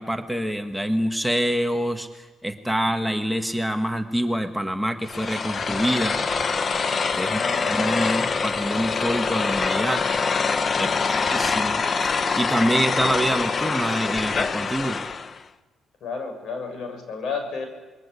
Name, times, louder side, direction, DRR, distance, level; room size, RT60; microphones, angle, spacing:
voice 1, 0.0-6.2 7.1-7.4 7.7-10.0 10.8-15.0, equal, ahead, 5 dB, 1.6 m, -26 dB
sound 1, 5.1-15.4, left 5 dB, 40° left, 1.0 m, -25 dB
voice 2, 7.3-8.0 10.8-11.2 16.0-17.7, left 4 dB, 65° left, 5 dB, 6.9 m, -32 dB
27.5 x 22.0 x 8.4 m, 1.3 s
cardioid pair, 90°, 0 cm